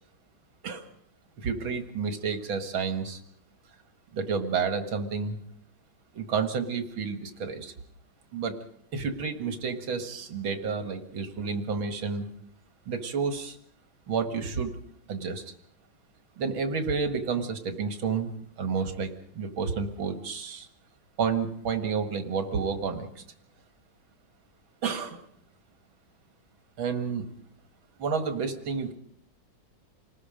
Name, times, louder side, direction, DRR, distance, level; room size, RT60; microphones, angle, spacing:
voice 1, 1.4-3.2 4.1-5.4 6.1-7.7 8.3-8.6 8.9-12.3 12.9-13.6 14.1-14.7 15.1-15.4 16.4-18.3 18.6-20.7 21.2-23.2 24.8-25.2 26.8-27.3 28.0-28.9, right 5 dB, 80° right, 8 dB, 2.7 m, -30 dB
27.5 x 19.5 x 5.2 m, 0.67 s
omnidirectional pair, 2.2 m